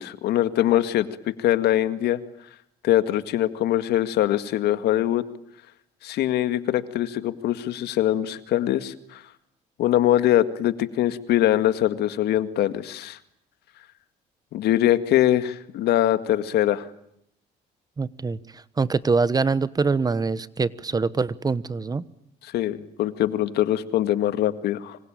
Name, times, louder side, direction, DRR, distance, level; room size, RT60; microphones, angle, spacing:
voice 1, 0.0-2.2 2.8-5.2 6.0-9.2 9.8-13.2 14.5-16.8 22.5-25.0, left 13 dB, 75° left, 11 dB, 1.9 m, -23 dB
voice 2, 18.0-22.0, right 4 dB, 20° right, 17 dB, 1.1 m, -24 dB
26.0 x 25.5 x 9.0 m, 0.74 s
cardioid pair, 110°, 17 cm